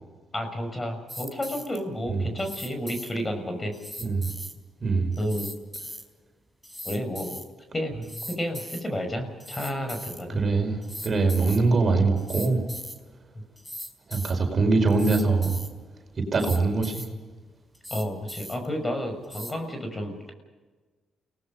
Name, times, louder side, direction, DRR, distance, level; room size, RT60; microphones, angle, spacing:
voice 1, 0.3-3.7 5.2-5.5 6.8-7.4 7.7-7.9 8.3-10.4 13.3-13.4 17.9-20.3, equal, 25° left, 6 dB, 6.4 m, -31 dB
sound 1, 1.1-1.8 2.4-3.1 3.7-4.6 5.1-6.0 6.6-7.4 8.0-8.8 9.4-10.2 10.8-11.6 12.2-13.0 13.6-14.3 14.9-15.7 16.3-17.1 17.7-18.7 19.2-19.5, equal, 5° left, 4.5 m, -39 dB
voice 2, 4.8-5.1 10.3-12.6 14.1-15.6 16.2-17.1, right 3 dB, 45° right, 4 dB, 4.9 m, -23 dB
29.5 x 19.5 x 5.5 m, 1.3 s
supercardioid pair, 50°, 0 cm